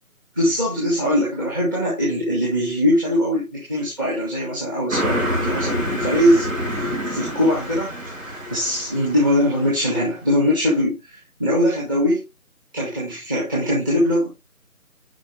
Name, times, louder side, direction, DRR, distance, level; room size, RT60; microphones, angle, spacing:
voice 1, 0.4-7.9 8.2-12.2 12.7-14.3, equal, 15° right, 1.8 m, -21 dB
Car passing by, 4.9-9.9, equal, 60° right, 4.4 m, -27 dB
8.7 x 5.4 x 3.2 m
figure-of-eight pair, 160°, 43 cm